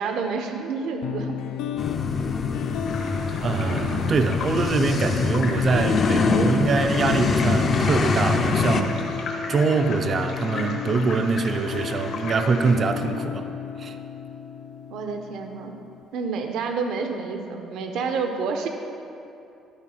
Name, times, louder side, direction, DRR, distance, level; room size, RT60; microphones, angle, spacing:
voice 1, 0.0-1.4 3.7-4.2 14.9-15.7 16.1-18.7, right 4 dB, 70° right, 5 dB, 0.7 m, -29 dB
sound 1, 1.0-16.0, left 7 dB, 90° left, 0.4 m, -33 dB
sound 2, 1.8-8.8, left 4 dB, 35° left, 0.5 m, -24 dB
sound 3, 2.8-12.7, left 3 dB, 60° left, 1.0 m, -37 dB
voice 2, 3.4-9.1 9.5-13.5 13.8-14.0, right 4 dB, 35° right, 8 dB, 0.4 m, -24 dB
11.5 x 4.2 x 5.5 m, 2.7 s
cardioid pair, 155°, 0 cm